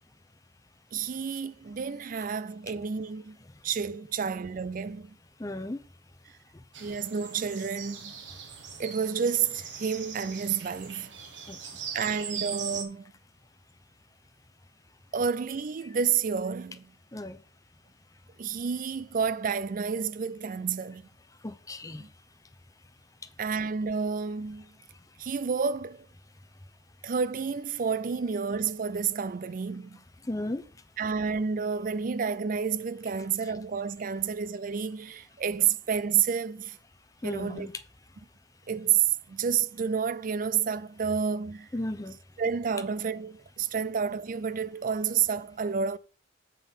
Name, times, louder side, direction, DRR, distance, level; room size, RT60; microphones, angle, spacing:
voice 1, 0.9-3.4 3.6-5.2 6.8-8.1 8.8-11.1 11.9-13.0 15.1-16.9 18.4-21.0 22.0-22.1 23.4-24.7 25.2-26.1 27.0-30.0 31.0-36.8 37.2-37.7 38.7-41.7 42.4-46.0, right 6 dB, 50° right, 0.4 m, -30 dB
voice 2, 5.4-5.8 11.5-11.6 17.1-17.4 21.4-22.0 30.2-30.6 37.2-37.8 41.7-42.2, left 1 dB, 20° left, 0.7 m, -34 dB
sound 1, 6.7-12.8, right 7 dB, 80° right, 1.6 m, -40 dB
7.5 x 5.4 x 5.5 m
head